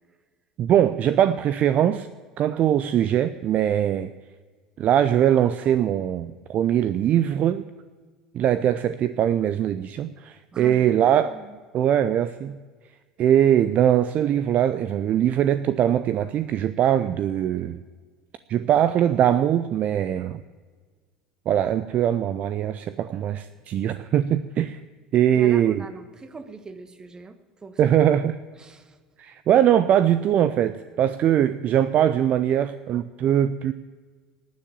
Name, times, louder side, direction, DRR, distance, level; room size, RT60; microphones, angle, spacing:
voice 1, 0.6-2.1 2.4-4.1 4.8-7.7 8.3-11.3 11.7-12.6 13.2-17.8 18.5-20.4 21.5-24.8 25.1-25.8 27.8-28.3 29.2-33.7, right 10 dB, 45° right, 12 dB, 0.6 m, -21 dB
voice 2, 10.5-11.6 25.3-27.9 28.6-29.0, right 3 dB, 20° right, 10 dB, 1.4 m, -42 dB
18.5 x 7.3 x 8.7 m, 1.5 s
figure-of-eight pair, 70°, 4 cm